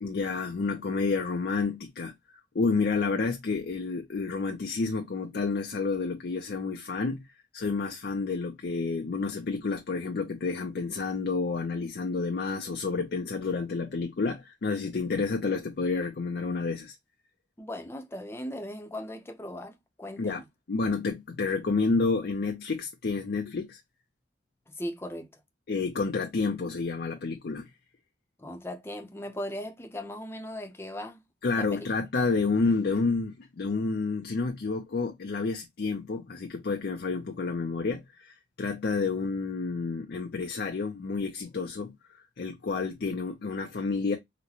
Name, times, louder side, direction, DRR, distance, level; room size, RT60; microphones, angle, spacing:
voice 1, 0.0-7.2 7.5-17.0 20.2-20.4 20.7-23.8 25.7-27.7 31.4-44.2, left 4 dB, 60° left, 0.5 m, -30 dB
voice 2, 17.6-20.5 24.7-25.3 28.4-31.2 31.6-31.9, left 1 dB, 15° left, 0.6 m, -38 dB
3.9 x 2.1 x 2.8 m
head